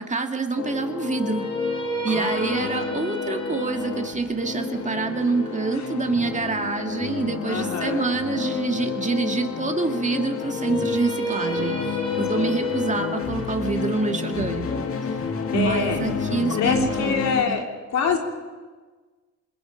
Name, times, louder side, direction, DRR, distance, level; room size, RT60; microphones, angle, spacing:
voice 1, 0.0-1.5 2.0-14.8 15.5-17.6, right 4 dB, 25° right, 5 dB, 2.0 m, -26 dB
sound 1, 0.6-17.4, left 5 dB, 50° left, 1.9 m, -30 dB
sound 2, 1.0-7.1 10.4-16.4, left 1 dB, 15° left, 3.6 m, -32 dB
voice 2, 2.1-2.8 5.7-5.9 7.5-8.0 11.5-11.9 12.3-12.6 15.5-16.1 16.5-17.6 17.9-18.2, left 6 dB, 65° left, 2 dB, 3.4 m, -27 dB
27.5 x 21.0 x 5.1 m, 1.4 s
cardioid pair, 90°, 30 cm